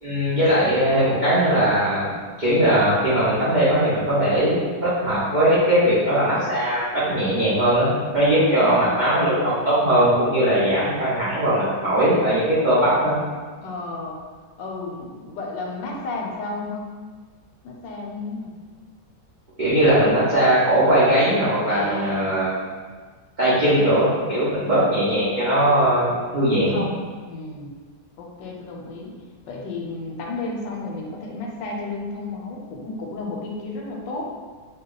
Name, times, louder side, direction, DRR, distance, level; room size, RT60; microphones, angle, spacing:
voice 1, 0.0-2.1 2.4-13.2 19.6-22.5 23.4-26.8, right 1 dB, 75° right, -11 dB, 0.4 m, -19 dB
voice 2, 8.5-9.0 13.6-14.2 14.6-16.8 17.6-18.5 21.7-22.4 23.6-23.9 24.5-25.0 26.4-27.7 28.2-29.1 29.5-34.2, left 3 dB, 85° left, 0 dB, 1.3 m, -32 dB
2.8 x 2.2 x 3.7 m, 1.5 s
omnidirectional pair, 1.9 m